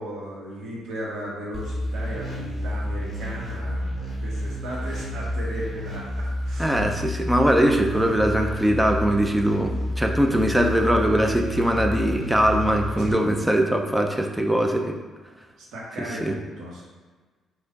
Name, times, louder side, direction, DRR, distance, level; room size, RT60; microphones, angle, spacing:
voice 1, 0.0-6.7 13.0-13.5 15.6-16.8, equal, 75° right, -3 dB, 1.1 m, -35 dB
sound 1, 1.5-13.1, equal, 15° left, 1.5 m, -30 dB
voice 2, 6.6-15.0 16.0-16.3, equal, 5° right, 3 dB, 0.5 m, -21 dB
4.3 x 2.5 x 3.9 m, 1.4 s
cardioid pair, 90°, 0 cm